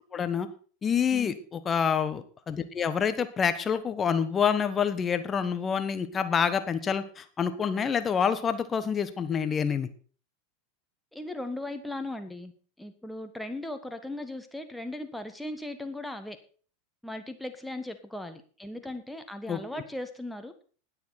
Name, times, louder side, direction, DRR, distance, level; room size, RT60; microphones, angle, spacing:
voice 1, 0.1-0.5 0.8-9.9 19.5-19.8, left 7 dB, 25° left, 11 dB, 1.2 m, -27 dB
voice 2, 11.1-12.5 12.8-16.4 17.0-20.5, left 1 dB, 5° left, 7 dB, 1.5 m, -38 dB
20.5 x 7.2 x 4.2 m, 0.40 s
figure-of-eight pair, 85°, 0 cm